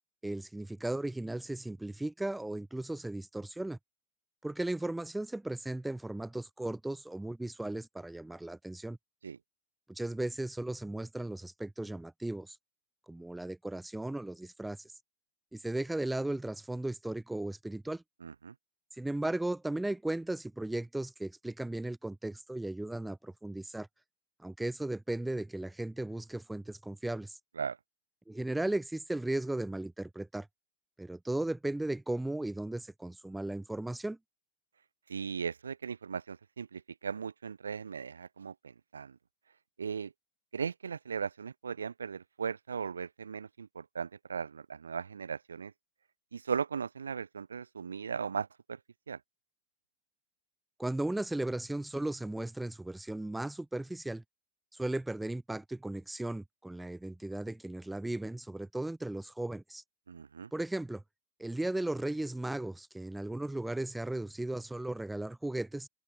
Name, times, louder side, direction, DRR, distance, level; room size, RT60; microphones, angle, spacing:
voice 1, 0.2-3.8 4.4-9.0 9.9-12.6 13.1-14.9 15.5-18.0 19.0-23.9 24.4-27.4 28.3-30.5 31.0-34.2 50.8-54.2 54.7-59.8 60.5-61.0 61.4-65.9, right 1 dB, 5° right, 0.5 m, -36 dB
voice 2, 18.2-18.5 27.6-27.8 35.1-39.2 39.8-40.1 40.5-45.7 46.3-48.8 49.1-49.2 60.1-60.5, right 6 dB, 70° right, 0.9 m, -38 dB
open air
figure-of-eight pair, 90°, 0 cm